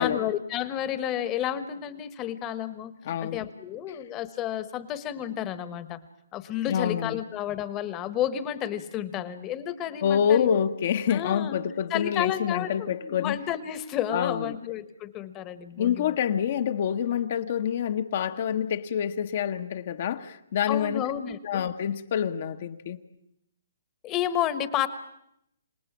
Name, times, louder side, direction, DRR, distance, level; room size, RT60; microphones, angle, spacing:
voice 1, 0.0-2.9 3.2-6.0 6.3-10.6 11.1-11.6 11.9-16.1 20.7-21.6 24.0-24.9, left 10 dB, 25° left, 1.2 m, -31 dB
voice 2, 3.0-3.5 6.7-7.2 10.0-13.4 14.1-14.6 15.8-21.1 21.4-23.0, left 8 dB, 50° left, 1.1 m, -27 dB
27.0 x 18.5 x 7.3 m
hypercardioid pair, 135°, 0 cm